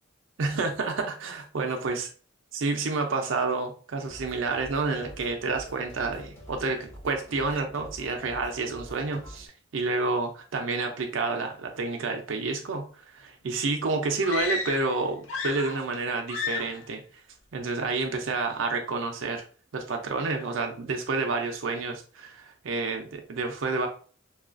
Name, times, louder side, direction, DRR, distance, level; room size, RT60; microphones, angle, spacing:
voice 1, 0.4-2.1 2.5-9.5 9.7-17.0 17.5-19.4 19.7-23.9, right 3 dB, 90° right, 4 dB, 0.5 m, -29 dB
sound 1, 4.0-9.5, equal, 10° left, 0.9 m, -46 dB
sound 2, 14.2-15.0 15.2-16.0 16.3-16.8, left 5 dB, 80° left, 0.6 m, -32 dB
3.0 x 2.4 x 2.4 m, 0.40 s
head